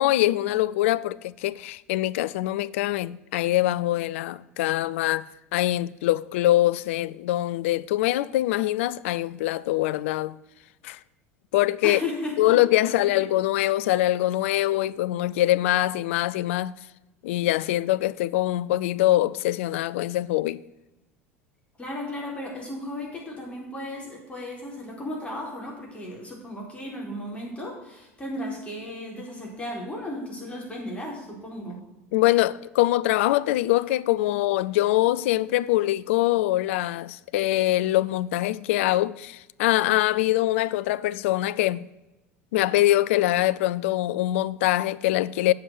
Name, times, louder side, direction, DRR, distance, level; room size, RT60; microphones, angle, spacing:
voice 1, 0.0-5.3 5.5-10.4 10.8-11.0 11.5-12.0 12.4-16.7 17.2-20.6 32.1-41.9 42.5-45.5, left 15 dB, 60° left, 0.4 m, -23 dB
voice 2, 11.8-12.5 12.8-13.3 21.8-31.8, left 1 dB, 15° left, 4.0 m, -35 dB
8.4 x 6.8 x 6.6 m
figure-of-eight pair, 75°, 8 cm